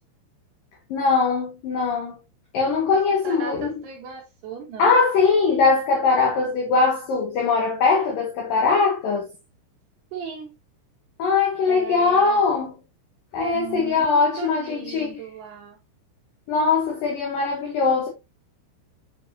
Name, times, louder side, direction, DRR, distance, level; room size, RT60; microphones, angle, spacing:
voice 1, 0.9-2.2 2.5-3.8 4.8-9.3 11.2-12.7 13.3-15.2 16.5-18.1, left 4 dB, 85° left, 2.0 m, -21 dB
voice 2, 3.2-5.0 10.1-10.5 11.7-12.4 13.4-15.8, right 5 dB, 75° right, 2.5 m, -36 dB
8.1 x 4.6 x 2.7 m
omnidirectional pair, 5.8 m